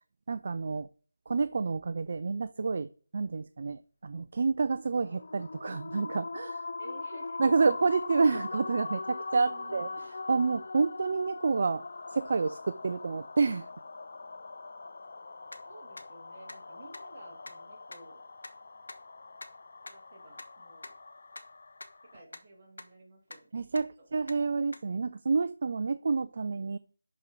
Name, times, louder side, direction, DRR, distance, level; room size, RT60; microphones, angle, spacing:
voice 1, 0.3-0.9 1.3-2.9 3.1-6.7 7.4-11.8 12.1-13.7 23.5-26.8, right 4 dB, 45° right, 13 dB, 0.3 m, -29 dB
sound 1, 4.9-22.2, left 3 dB, 55° left, 0.3 m, -42 dB
voice 2, 6.8-7.4 9.3-10.1 15.6-18.2 19.8-20.9 22.1-23.6 24.0-24.1, right 2 dB, 25° right, -4 dB, 2.5 m, -53 dB
sound 2, 15.5-15.6 16.0-16.1 16.5-16.6 16.9-17.0 17.4-17.5 17.9-18.0 18.4-18.5 18.9-19.0 19.4-19.5 19.9-20.0 20.4-20.5 20.8-20.9 21.3-21.4 21.8-21.9 22.3-22.4 22.8-22.9 23.3-23.4 23.8-23.9 24.3-24.4 24.7-24.8, left 2 dB, 80° left, 1.1 m, -44 dB
11.0 x 4.3 x 3.8 m, 0.41 s
figure-of-eight pair, 170°, 0 cm